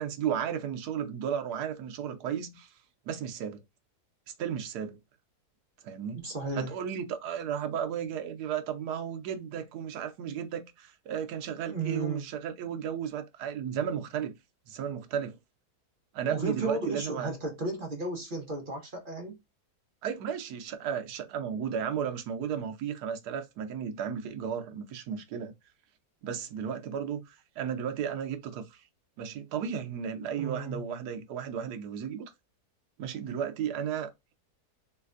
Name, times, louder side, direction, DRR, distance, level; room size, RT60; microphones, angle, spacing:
voice 1, 0.0-2.7 3.1-3.6 4.4-5.0 5.8-6.2 6.6-14.3 14.7-15.4 16.1-17.3 20.0-25.5 26.2-28.8 29.2-32.3 33.0-34.3, right 8 dB, 80° right, 1.2 m, -34 dB
voice 2, 6.1-6.7 11.7-12.2 16.3-19.4 30.4-30.8, right 3 dB, 40° right, 0.8 m, -34 dB
3.3 x 3.2 x 2.4 m
omnidirectional pair, 1.7 m